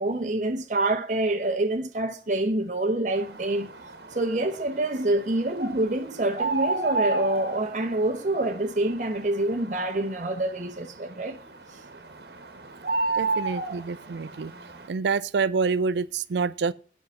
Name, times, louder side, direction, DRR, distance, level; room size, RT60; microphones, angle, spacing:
voice 1, 0.0-3.7 4.1-11.4, right 2 dB, 45° right, 0.7 m, -26 dB
sound 1, 3.1-14.9, right 3 dB, 65° right, 1.2 m, -33 dB
voice 2, 13.1-14.5 14.9-16.7, right 4 dB, 80° right, 0.4 m, -27 dB
8.0 x 5.5 x 6.3 m
head